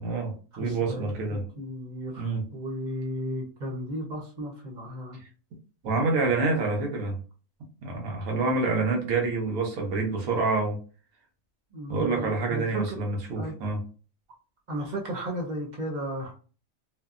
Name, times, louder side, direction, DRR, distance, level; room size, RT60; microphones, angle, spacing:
voice 1, 0.0-1.5 2.2-2.5 5.8-7.2 7.8-10.8 11.9-13.8, right 3 dB, 90° right, 1.3 m, -27 dB
voice 2, 0.5-5.2 11.7-13.0 13.4-13.5 14.7-16.3, equal, 40° right, 0.8 m, -35 dB
3.1 x 2.1 x 2.4 m
omnidirectional pair, 1.4 m